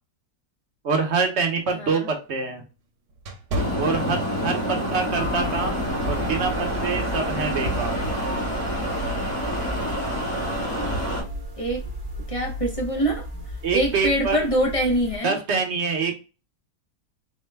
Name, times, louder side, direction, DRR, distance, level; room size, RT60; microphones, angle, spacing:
voice 1, 0.8-2.6 3.8-5.8 6.0-8.0 13.6-14.4 15.2-16.2, right 4 dB, 55° right, 0.9 m, -25 dB
sound 1, 1.0-4.7 5.1-5.4 6.0-6.3, right 1 dB, 80° right, 1.2 m, -34 dB
voice 2, 1.7-2.1 4.8-5.2 11.6-11.8 12.3-13.3 13.7-15.4, equal, 45° left, 0.4 m, -25 dB
sound 2, 3.5-11.2, equal, 75° left, 2.6 m, -27 dB
sound 3, 5.1-15.2, equal, 30° right, 0.9 m, -34 dB
4.5 x 2.1 x 3.3 m
omnidirectional pair, 1.6 m